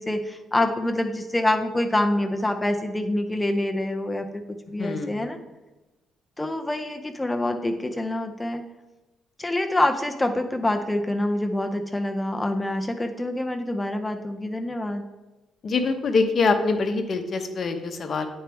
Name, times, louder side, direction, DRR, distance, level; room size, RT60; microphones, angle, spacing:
voice 1, 0.0-5.4 6.4-8.6 9.4-15.0, left 1 dB, 15° left, 5 dB, 0.6 m, -26 dB
voice 2, 4.8-5.3 15.6-18.3, left 4 dB, 50° left, 6 dB, 0.8 m, -24 dB
8.9 x 4.4 x 3.4 m, 1.1 s
cardioid pair, 90°, 0 cm